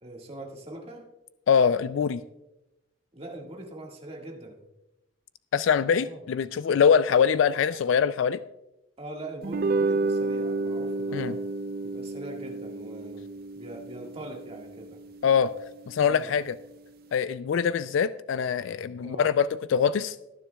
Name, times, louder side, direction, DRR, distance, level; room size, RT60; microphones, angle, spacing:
voice 1, 0.0-1.1 3.1-4.6 5.9-6.2 7.7-7.8 9.0-11.4 11.8-13.2 13.5-15.0 16.0-16.3 19.0-19.3, right 1 dB, 30° right, 0 dB, 1.7 m, -42 dB
voice 2, 1.5-2.2 5.5-8.4 11.1-11.3 15.2-15.5 15.9-16.5 17.1-20.2, left 7 dB, 75° left, 15 dB, 0.3 m, -23 dB
sound 1, 9.4-15.9, right 3 dB, 50° right, 0.4 m, -31 dB
18.5 x 10.0 x 2.3 m, 0.96 s
head